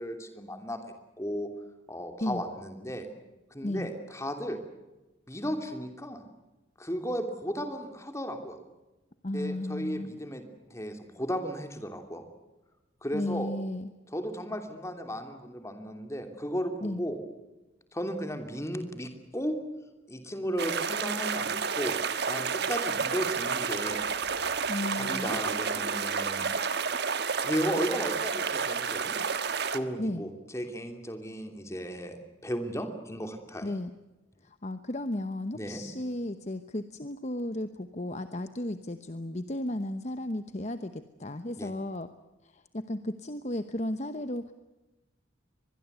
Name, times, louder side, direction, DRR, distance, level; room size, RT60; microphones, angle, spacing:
voice 1, 0.0-1.5 1.9-3.1 3.5-4.6 5.3-6.2 6.8-8.6 9.3-12.2 13.0-13.5 14.1-17.2 17.9-19.6 20.1-22.0 22.3-24.0 24.9-26.5 27.4-29.2 29.7-33.7 35.5-35.9 41.6-41.7, equal, 15° left, 6 dB, 3.0 m, -35 dB
voice 2, 3.6-3.9 9.2-10.1 13.1-13.9 16.8-17.0 24.7-25.4 30.0-30.2 33.6-33.9 34.4-42.1 42.4-44.5, left 1 dB, 35° left, 10 dB, 0.9 m, -34 dB
sound 1, 20.6-29.8, right 5 dB, 55° right, 1.4 m, -30 dB
24.5 x 21.0 x 8.2 m, 1.0 s
head